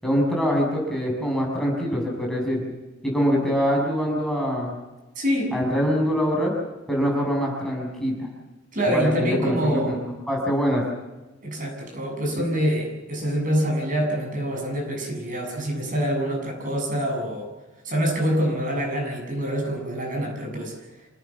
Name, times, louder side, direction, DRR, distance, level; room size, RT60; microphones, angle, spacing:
voice 1, 0.0-2.6 3.0-4.7 5.5-6.5 6.9-8.3 8.9-10.8, equal, 5° left, -2 dB, 6.7 m, -24 dB
voice 2, 5.2-5.6 8.7-10.0 11.4-17.5 17.8-20.7, equal, 45° right, 1 dB, 7.7 m, -25 dB
27.0 x 18.5 x 7.4 m, 1.1 s
head